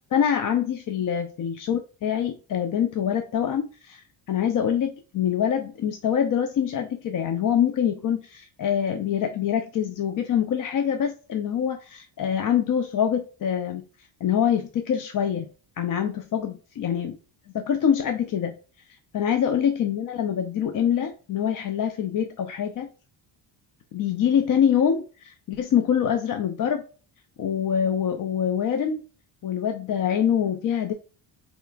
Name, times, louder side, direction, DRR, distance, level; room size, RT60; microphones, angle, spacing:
voice 1, 0.1-13.8 14.2-15.5 15.8-17.2 17.5-18.5 19.1-22.9 23.9-26.9 27.4-29.0 29.4-30.9, left 8 dB, 45° left, 0.5 m, -25 dB
4.2 x 3.0 x 2.3 m
cardioid pair, 95°, 49 cm